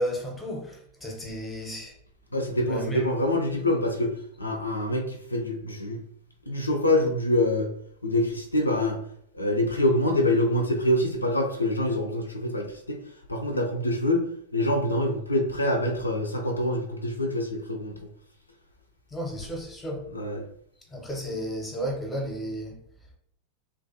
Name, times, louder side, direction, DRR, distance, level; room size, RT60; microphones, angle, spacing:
voice 1, 0.0-1.9 2.6-3.1 19.1-20.1 20.9-22.8, equal, 10° left, 0.7 m, -33 dB
voice 2, 2.3-4.1 4.4-6.0 6.5-7.7 8.0-9.0 9.3-13.0 13.3-17.9 20.1-20.4, left 1 dB, 80° left, 0.3 m, -25 dB
2.4 x 2.1 x 2.6 m
figure-of-eight pair, 90°, 0 cm